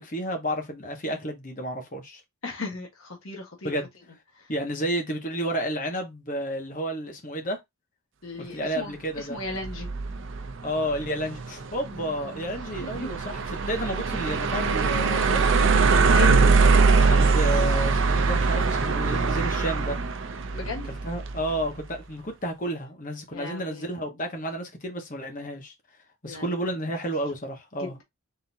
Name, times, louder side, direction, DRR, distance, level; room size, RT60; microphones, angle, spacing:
voice 1, 0.0-2.2 3.6-3.9 4.5-7.6 8.4-9.4 10.6-15.8 17.0-20.0 20.9-25.7 26.2-28.0, right 1 dB, 35° left, 1.3 m, -31 dB
voice 2, 2.4-3.8 4.3-4.5 8.2-9.9 12.8-13.1 15.0-15.2 15.8-16.4 20.5-20.9 23.3-24.0 26.2-26.5 27.8-28.0, left 3 dB, 70° left, 1.5 m, -36 dB
sound 1, 9.5-21.7, right 4 dB, 60° right, 0.6 m, -23 dB
3.9 x 3.8 x 2.8 m
head